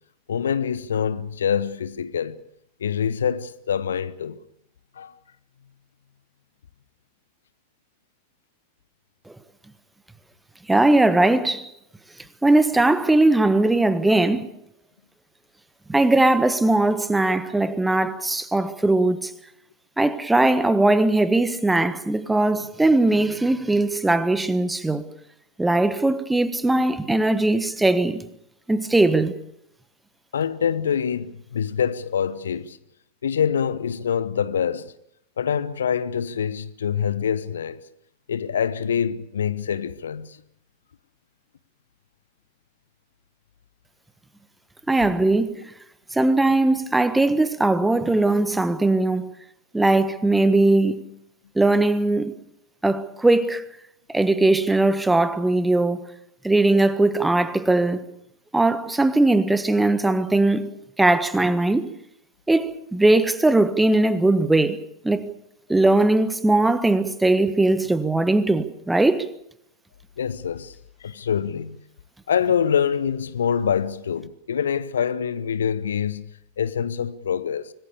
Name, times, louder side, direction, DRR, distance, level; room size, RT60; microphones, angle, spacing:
voice 1, 0.3-2.4 2.8-4.4 5.0-5.1 30.3-32.8 33.2-34.9 35.4-37.8 38.3-40.4 70.2-70.7 71.0-71.8 72.3-76.3 76.6-77.7, left 8 dB, 65° left, 0.9 m, -25 dB
voice 2, 10.7-11.7 12.4-14.5 15.9-19.3 20.0-25.1 25.6-28.2 28.7-29.4 44.9-45.6 46.1-49.3 49.7-51.0 51.5-52.3 52.8-53.6 54.1-56.0 56.4-58.0 58.5-60.7 61.0-61.9 62.5-65.3 65.7-69.3, right 2 dB, 5° right, 1.4 m, -20 dB
25.5 x 19.5 x 6.9 m
figure-of-eight pair, 90°, 0 cm